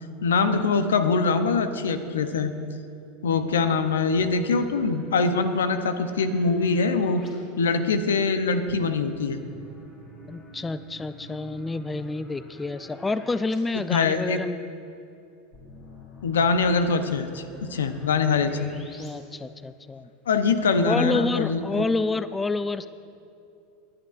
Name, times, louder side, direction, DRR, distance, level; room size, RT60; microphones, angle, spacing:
voice 1, 0.2-2.5 3.2-7.2 7.5-9.4 13.7-14.4 16.2-18.7 20.3-21.9, left 4 dB, 80° left, 9 dB, 0.6 m, -23 dB
sound 1, 4.2-7.3 8.7-13.5 13.9-14.0 15.5-19.1, left 2 dB, 40° left, 2.6 m, -47 dB
voice 2, 10.3-14.6 19.0-20.1 20.7-22.9, left 3 dB, 15° left, 13 dB, 0.3 m, -28 dB
20.5 x 8.6 x 2.5 m, 2.6 s
hypercardioid pair, 90°, 0 cm